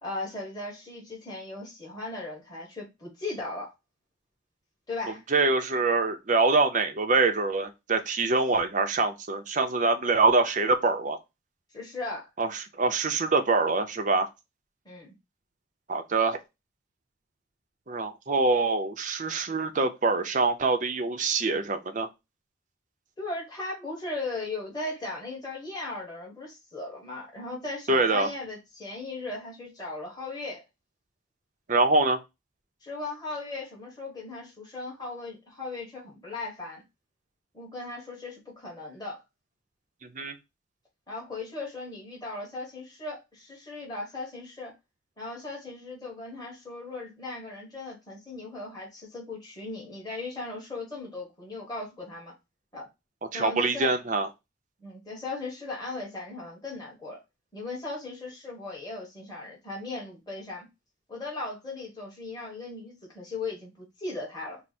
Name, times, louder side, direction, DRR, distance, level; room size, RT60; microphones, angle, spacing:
voice 1, 0.0-3.7 4.9-5.2 11.7-12.3 14.8-15.1 23.2-30.6 32.8-36.8 37.5-39.2 41.1-44.7 45.2-52.3 52.7-52.9 53.3-53.9 54.8-57.2 57.5-60.7 61.1-64.6, left 2 dB, 20° left, 1.3 m, -37 dB
voice 2, 5.3-11.2 12.4-14.3 15.9-16.4 17.9-22.1 27.9-28.3 31.7-32.2 40.0-40.3 53.3-54.3, right 3 dB, 40° right, 0.6 m, -25 dB
4.6 x 2.0 x 4.1 m
head